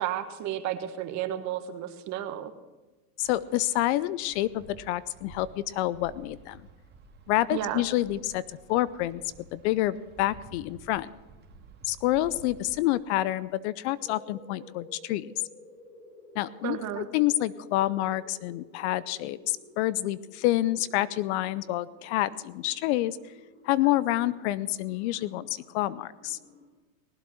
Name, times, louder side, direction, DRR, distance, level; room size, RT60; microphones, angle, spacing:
voice 1, 0.0-2.5 7.5-7.8 16.6-17.1, right 11 dB, 40° right, 9 dB, 1.4 m, -32 dB
voice 2, 3.2-6.6 7.3-8.4 8.7-9.2 9.5-11.1 11.8-15.3 16.4-23.2 23.6-26.4, left 15 dB, 50° left, 19 dB, 0.6 m, -28 dB
Wind, 3.2-13.0, right 4 dB, 20° right, 2.3 m, -52 dB
sound 1, 14.0-26.7, left 1 dB, 20° left, 4.8 m, -53 dB
18.5 x 8.3 x 6.4 m, 1.2 s
hypercardioid pair, 115°, 44 cm